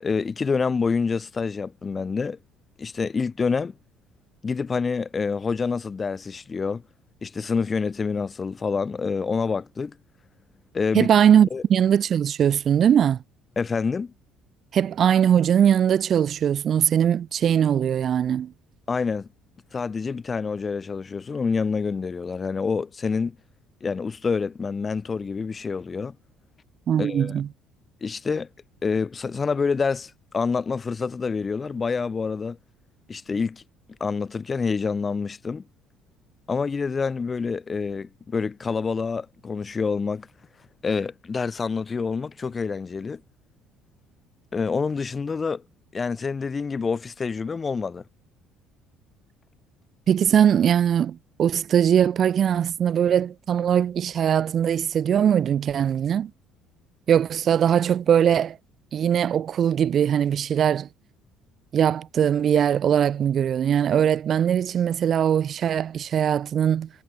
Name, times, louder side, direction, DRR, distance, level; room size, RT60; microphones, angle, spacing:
voice 1, 0.0-2.4 2.8-3.8 4.4-6.8 7.2-10.0 10.7-11.1 11.5-11.6 13.6-14.1 18.9-19.3 19.7-23.4 23.8-26.2 27.0-27.3 28.0-28.5 28.8-32.6 33.1-33.6 34.0-35.7 36.5-40.3 40.8-43.2 44.5-45.6 45.9-48.0, left 5 dB, 25° left, 0.5 m, -27 dB
voice 2, 10.9-13.2 14.7-18.5 26.9-27.5 50.1-56.3 57.1-58.6 58.9-60.9 61.7-66.9, right 9 dB, 45° right, 0.4 m, -21 dB
cardioid pair, 120°, 0 cm